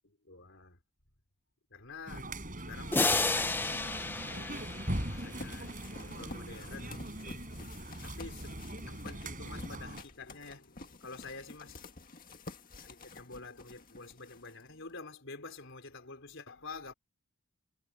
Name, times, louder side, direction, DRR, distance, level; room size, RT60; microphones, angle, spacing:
voice 1, 0.0-0.8 1.7-2.3 2.6-4.8 5.0-5.7 6.0-7.0 8.0-11.8 12.8-16.9, left 3 dB, 55° left, 4.4 m, -48 dB
sound 1, 2.1-10.0, right 1 dB, 35° right, 7.2 m, -41 dB
sound 2, 2.9-5.6, left 3 dB, 10° left, 0.5 m, -32 dB
sound 3, 5.4-14.9, left 2 dB, 40° left, 1.9 m, -50 dB
head